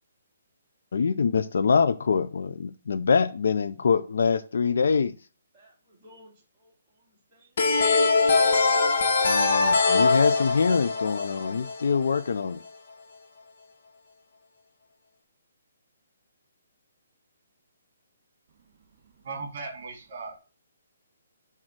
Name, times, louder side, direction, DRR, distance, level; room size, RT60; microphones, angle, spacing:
voice 1, 0.9-5.1 9.2-12.6, left 5 dB, 70° left, 0.5 m, -24 dB
voice 2, 5.5-7.6, left 1 dB, 10° right, 2.8 m, -57 dB
sound 1, 7.6-12.2, left 4 dB, 55° left, 1.2 m, -22 dB
voice 3, 19.0-20.4, right 4 dB, 45° right, 2.4 m, -38 dB
6.5 x 3.7 x 6.1 m
hypercardioid pair, 165°, 0 cm